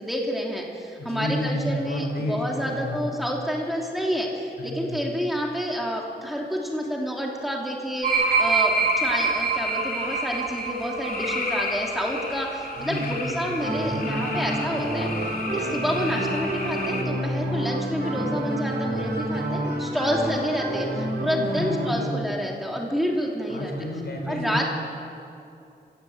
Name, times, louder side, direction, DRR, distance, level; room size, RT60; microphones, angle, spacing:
voice 1, 0.0-15.1 15.5-23.7 24.3-24.6, equal, ahead, -2 dB, 3.0 m, -29 dB
voice 2, 1.0-3.2 4.6-5.0 12.8-14.6 21.5-22.2 23.5-24.6, equal, 75° left, 2 dB, 4.9 m, -31 dB
sound 1, 8.0-17.0, left 3 dB, 60° left, 3.2 m, -33 dB
sound 2, 8.0-12.6 12.9-13.2, right 5 dB, 65° right, 3.0 m, -26 dB
sound 3, 13.6-21.9, right 1 dB, 90° right, 5.4 m, -29 dB
26.5 x 17.0 x 8.1 m, 2.6 s
wide cardioid pair, 150°, 17 cm